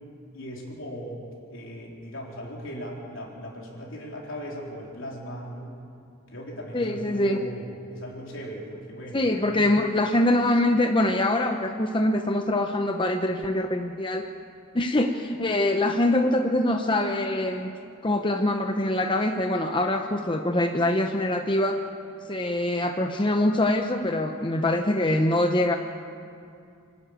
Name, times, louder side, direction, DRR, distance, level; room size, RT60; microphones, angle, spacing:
voice 1, 0.3-1.2 1.5-5.7 6.3-9.7, equal, 60° left, -2 dB, 4.0 m, -38 dB
voice 2, 6.7-7.4 9.1-14.3 14.7-17.7 18.0-21.8 22.3-25.8, left 1 dB, 20° left, 4 dB, 0.8 m, -24 dB
25.5 x 12.0 x 9.0 m, 2.5 s
head